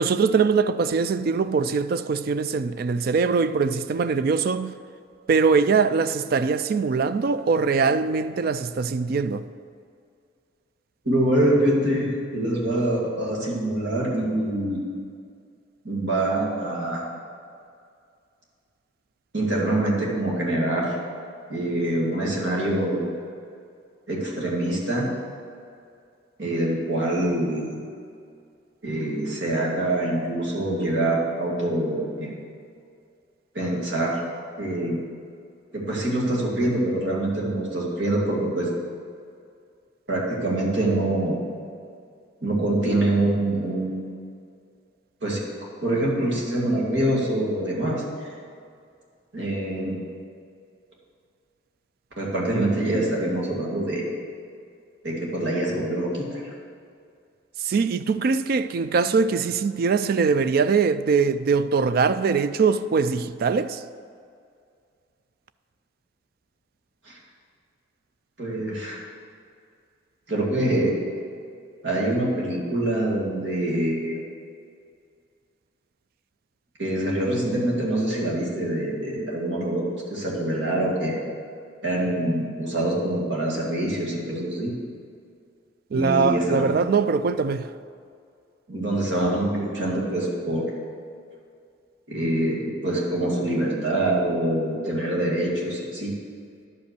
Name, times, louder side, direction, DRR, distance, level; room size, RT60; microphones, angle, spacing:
voice 1, 0.0-4.7 5.3-9.4 57.6-63.8 85.9-87.7, right 5 dB, 50° right, 0.3 m, -22 dB
voice 2, 11.0-14.8 15.8-17.0 19.3-20.9 21.5-23.2 24.1-25.1 26.4-27.8 28.8-32.3 33.5-34.2 34.6-35.0 35.7-38.7 40.1-41.4 42.4-44.0 45.2-45.4 45.8-48.4 49.3-50.0 52.2-54.1 55.0-56.5 67.1-67.2 68.4-69.0 70.3-70.9 71.8-74.2 76.8-79.8 80.1-81.2 81.8-84.7 85.9-86.8 88.7-90.7 92.1-96.1, right 1 dB, 70° right, 2.2 m, -25 dB
11.0 x 5.3 x 6.8 m
head